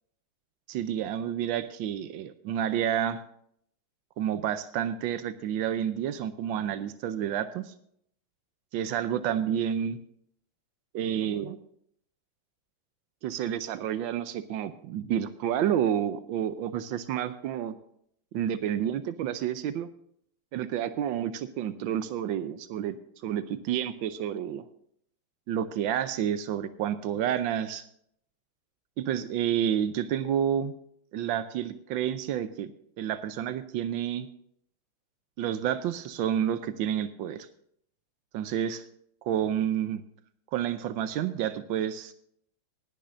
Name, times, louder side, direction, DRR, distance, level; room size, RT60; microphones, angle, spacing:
voice 1, 0.7-3.2 4.2-7.7 8.7-10.0 10.9-11.6 13.2-17.8 18.3-19.9 20.5-23.0 23.2-24.7 25.5-27.8 29.0-30.7 31.1-32.7 33.0-34.3 35.4-37.5 38.3-38.8 39.2-40.0 40.5-42.1, right 10 dB, 90° right, 11 dB, 1.5 m, -29 dB
19.5 x 9.9 x 2.6 m, 0.67 s
omnidirectional pair, 2.1 m